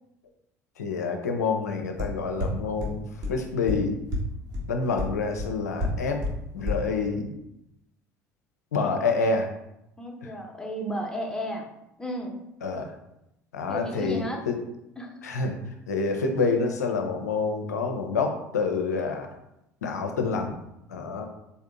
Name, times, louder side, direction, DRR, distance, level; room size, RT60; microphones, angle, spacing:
voice 1, 0.8-3.0 3.3-4.0 4.7-6.2 6.5-7.3 8.7-9.5 10.2-10.3 12.6-12.9 13.5-14.6 15.2-15.5 15.9-19.3 19.8-20.6 20.9-21.3, left 4 dB, 75° left, 4 dB, 0.6 m, -27 dB
sound 1, 2.0-2.1 2.4-2.5 2.8-2.9 3.2-3.3 3.7-3.8 4.1-4.2 4.5-4.6 5.0-5.1 5.4-5.5 5.8-5.9 6.2-6.3 6.7-6.8, left 2 dB, 40° right, 1.4 m, -27 dB
voice 2, 10.0-11.7 12.0-12.4 13.7-14.4 15.0-15.1, equal, 5° left, 1 dB, 1.0 m, -33 dB
4.1 x 3.6 x 3.5 m, 0.85 s
figure-of-eight pair, 60°, 9 cm